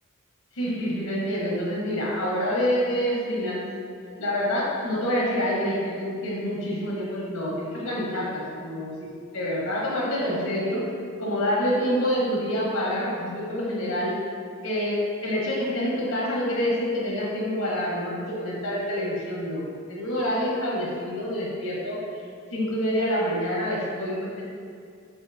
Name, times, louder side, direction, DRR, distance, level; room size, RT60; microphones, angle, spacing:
voice 1, 0.5-3.7 4.2-10.8 11.2-14.1 14.6-22.0 22.5-24.4, equal, 85° left, -5 dB, 0.9 m, -27 dB
4.4 x 2.5 x 2.6 m, 2.3 s
head